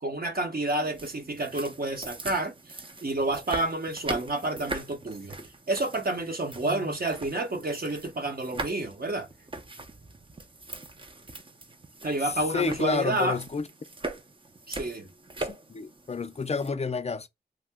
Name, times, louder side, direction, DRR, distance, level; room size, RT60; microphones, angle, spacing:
voice 1, 0.0-5.4 5.7-9.3 12.0-13.4 14.7-15.1, right 2 dB, 50° right, 0.9 m, -30 dB
sound 1, 0.8-16.7, right 2 dB, 25° right, 0.5 m, -41 dB
voice 2, 6.6-7.0 12.5-13.7 15.4-17.3, left 4 dB, 35° left, 0.4 m, -30 dB
2.7 x 2.0 x 3.3 m
cardioid pair, 55°, 19 cm